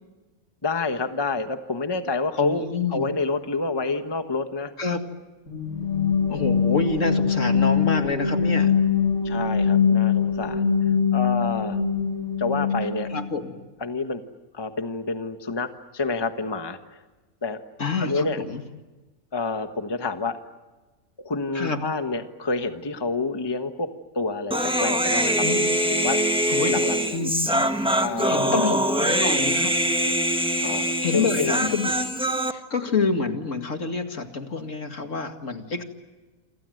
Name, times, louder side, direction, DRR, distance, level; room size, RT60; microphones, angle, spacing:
voice 1, 0.6-2.6 2.9-4.7 9.2-10.7 11.1-11.8 12.4-13.1 13.8-14.2 14.5-17.0 17.4-17.6 18.0-18.4 19.3-20.4 21.2-23.9 24.1-25.4 25.9-26.2 26.7-27.2 28.0-28.8 30.6-31.8, left 3 dB, 20° left, 7 dB, 1.2 m, -28 dB
voice 2, 2.4-3.1 4.8-5.0 6.3-8.8 13.1-13.6 17.8-18.6 21.5-21.8 25.4-25.7 26.5-26.8 27.1-27.5 28.3-29.7 31.0-32.1 32.5-35.8, left 4 dB, 60° left, 6 dB, 2.4 m, -27 dB
sound 1, 5.5-13.2, left 6 dB, 85° left, 4.7 m, -23 dB
Human voice, 24.5-32.5, right 1 dB, 5° right, 1.4 m, -23 dB
28.5 x 26.0 x 7.8 m, 1.2 s
omnidirectional pair, 1.5 m